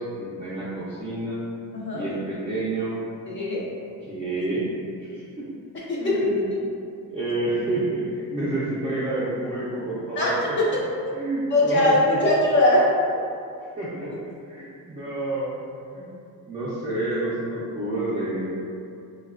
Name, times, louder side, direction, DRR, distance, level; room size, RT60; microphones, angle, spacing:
voice 1, 0.0-1.5 1.9-3.0 4.0-4.7 5.0-5.5 6.0-6.4 7.1-10.6 11.1-12.2 13.8-14.1 14.5-15.6 15.9-16.1 16.5-18.6, right 2 dB, 20° right, -9 dB, 0.4 m, -29 dB
voice 2, 1.7-2.1 3.3-3.6 5.7-6.6 10.2-10.7 11.5-12.9, left 1 dB, 35° left, -6 dB, 0.5 m, -21 dB
3.9 x 2.2 x 2.3 m, 2.4 s
cardioid pair, 160°, 33 cm